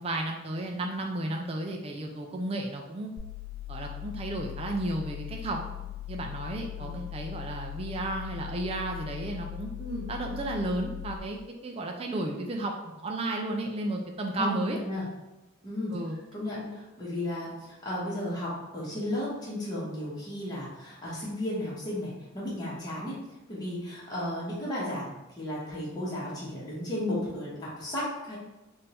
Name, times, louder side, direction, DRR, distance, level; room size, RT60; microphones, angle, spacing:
voice 1, 0.0-3.1 3.7-5.6 6.1-9.7 10.1-14.8 15.9-16.2, right 2 dB, 25° right, 2 dB, 0.4 m, -33 dB
sound 1, 3.2-11.2, left 14 dB, 85° left, 0.4 m, -40 dB
voice 2, 14.3-15.0 15.6-15.9 16.3-23.2 23.5-28.4, left 1 dB, 20° left, -8 dB, 1.3 m, -34 dB
3.7 x 2.6 x 4.2 m, 0.99 s
head